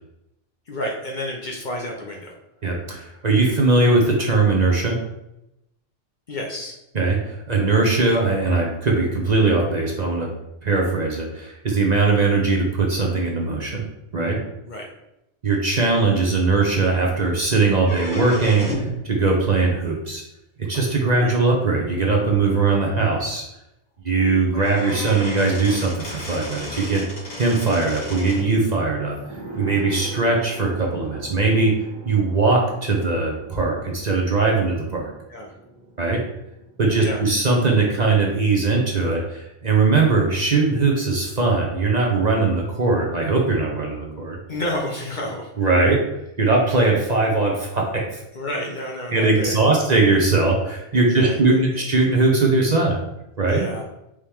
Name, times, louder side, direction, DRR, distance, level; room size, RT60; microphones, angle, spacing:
voice 1, 0.7-2.4 6.3-6.8 14.6-14.9 21.1-21.4 35.3-35.5 36.9-37.2 44.5-45.5 48.3-49.7 50.9-51.8 53.5-53.8, left 1 dB, 50° left, 0 dB, 0.7 m, -30 dB
voice 2, 2.6-5.0 6.9-10.3 10.6-13.8 14.1-14.4 15.4-20.2 20.7-23.4 24.0-31.7 32.1-35.1 36.0-36.2 36.8-44.4 45.6-46.0 46.4-48.2 49.1-53.0 53.4-53.6, right 3 dB, 40° right, -1 dB, 0.7 m, -20 dB
sound 1, 17.8-19.0 20.7-20.8 21.8-21.9 22.3-22.4 22.7-22.8 24.1-24.2 24.5-28.5, equal, 65° left, 2.1 m, -33 dB
sound 2, 29.1-38.4 38.7-38.8, right 3 dB, 25° left, 1.1 m, -40 dB
4.8 x 3.0 x 3.4 m, 0.86 s
omnidirectional pair, 1.2 m